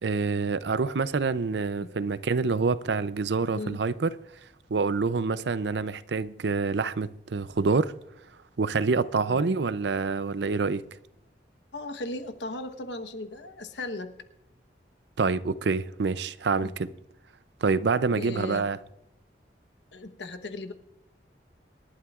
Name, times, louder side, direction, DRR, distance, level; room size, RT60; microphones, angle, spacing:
voice 1, 0.0-4.1 4.7-7.9 8.6-10.8 15.2-16.9 17.6-18.8, right 4 dB, 80° right, 0.5 m, -26 dB
voice 2, 11.7-14.1 16.6-16.7 18.1-18.6 19.9-20.7, left 2 dB, 90° left, 1.1 m, -37 dB
27.5 x 11.5 x 2.4 m
head